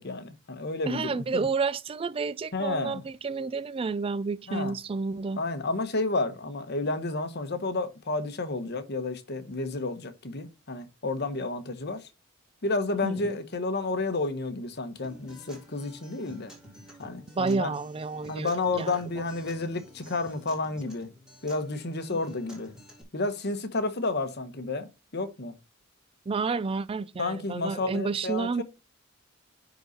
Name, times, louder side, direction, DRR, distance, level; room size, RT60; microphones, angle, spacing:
voice 1, 0.0-1.4 2.5-3.0 4.5-4.7 5.4-12.0 12.6-16.5 17.0-17.7 18.3-21.1 21.4-22.7 23.1-25.5 27.2-28.6, left 3 dB, 55° left, 1.1 m, -31 dB
voice 2, 0.9-5.4 13.0-13.3 17.4-18.5 18.8-19.0 22.1-22.2 26.3-28.6, right 4 dB, 25° right, 0.3 m, -30 dB
Acoustic guitar, 15.0-23.0, equal, 5° right, 3.1 m, -51 dB
10.0 x 4.0 x 4.2 m
head